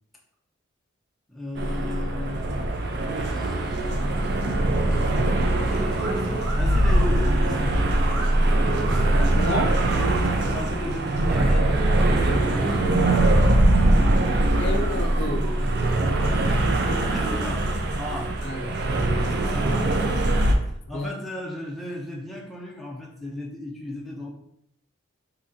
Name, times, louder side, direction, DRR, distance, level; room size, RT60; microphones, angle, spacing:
voice 1, 1.3-2.7 3.1-7.9 8.8-9.2 10.4-13.9 17.1-18.4 19.3-24.3, left 1 dB, ahead, -2 dB, 0.5 m, -36 dB
sound 1, 1.6-20.5, right 1 dB, 50° right, 0.5 m, -22 dB
sound 2, 5.9-6.1 6.4-7.2 8.0-8.3 8.8-10.3 11.3-12.1 12.6-13.6 14.0-14.1 14.5-15.5 16.1-16.3 16.7-17.8, right 2 dB, 80° right, 1.0 m, -39 dB
voice 2, 9.3-9.8 14.6-15.5 18.4-19.3 20.9-21.1, left 1 dB, 55° left, 4 dB, 0.6 m, -30 dB
4.3 x 2.8 x 3.7 m, 0.73 s
head